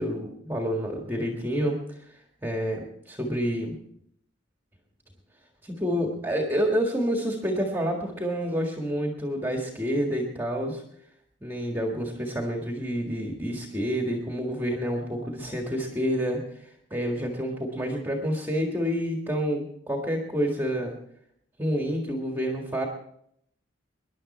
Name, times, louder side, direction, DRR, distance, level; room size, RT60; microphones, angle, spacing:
voice 1, 0.0-3.7 5.6-10.8 11.4-16.4 16.9-21.0 21.6-22.9, equal, 10° right, 1 dB, 1.7 m, -28 dB
22.0 x 11.0 x 4.3 m, 0.71 s
head